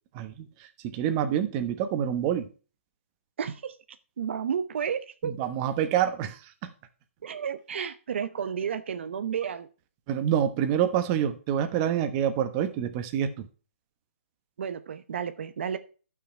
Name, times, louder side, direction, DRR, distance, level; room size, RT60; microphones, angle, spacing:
voice 1, 0.1-0.5 0.8-2.5 5.2-6.7 10.1-13.5, right 9 dB, 30° right, 1.0 m, -27 dB
voice 2, 3.4-3.8 4.2-5.3 7.2-9.7 14.6-15.8, right 7 dB, 65° right, 0.8 m, -32 dB
11.0 x 6.1 x 4.4 m
hypercardioid pair, 150°, 7 cm